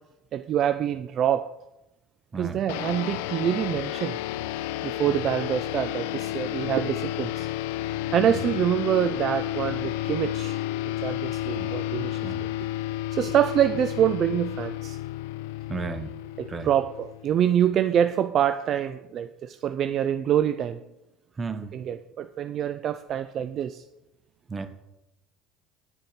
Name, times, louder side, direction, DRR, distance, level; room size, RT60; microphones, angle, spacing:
voice 1, 0.3-1.5 2.3-4.2 4.8-7.5 8.1-10.6 11.0-12.2 13.1-15.0 16.4-20.8 21.7-23.8, right 10 dB, 50° right, 10 dB, 0.4 m, -25 dB
voice 2, 2.3-2.7 5.1-5.2 8.3-8.4 11.6-12.4 15.7-16.2 16.5-16.7 21.4-21.7 24.5-24.7, right 4 dB, 25° right, 10 dB, 1.0 m, -35 dB
sound 1, 2.7-17.5, left 14 dB, 80° left, 0.4 m, -31 dB
9.4 x 6.5 x 4.3 m, 0.94 s
supercardioid pair, 90°, 0 cm